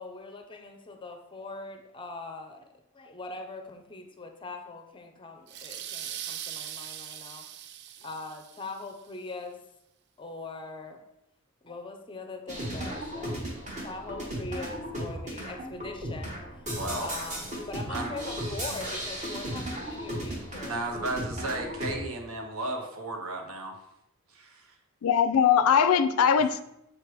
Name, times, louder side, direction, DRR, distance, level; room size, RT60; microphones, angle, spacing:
voice 1, 0.0-2.7 2.9-7.5 8.0-9.6 10.2-11.0 11.6-13.4 13.8-20.8, left 3 dB, 20° left, 5 dB, 0.5 m, -42 dB
sound 1, 5.5-8.9, right 10 dB, 50° right, 0.3 m, -40 dB
sound 2, 12.5-21.9, equal, 30° right, 1.3 m, -35 dB
voice 2, 16.7-17.1 17.9-18.1 20.6-23.8 24.3-24.8 26.4-26.5, right 2 dB, 70° right, 3 dB, 0.9 m, -34 dB
voice 3, 25.0-26.6, left 7 dB, 75° left, 11 dB, 0.4 m, -21 dB
7.3 x 3.3 x 4.6 m, 0.85 s
head